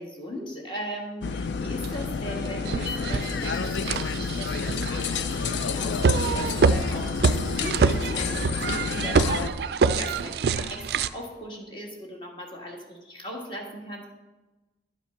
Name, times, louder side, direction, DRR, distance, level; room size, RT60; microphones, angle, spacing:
voice 1, 0.0-14.1, equal, 25° left, 0 dB, 1.6 m, -38 dB
sound 1, 1.2-9.5, left 5 dB, 70° left, 0.4 m, -29 dB
sound 2, 1.8-1.9 2.5-11.1, right 4 dB, 60° right, 0.3 m, -26 dB
Glass, 3.0-8.1, left 4 dB, 45° left, 0.8 m, -49 dB
10.5 x 5.6 x 5.7 m, 1.2 s
head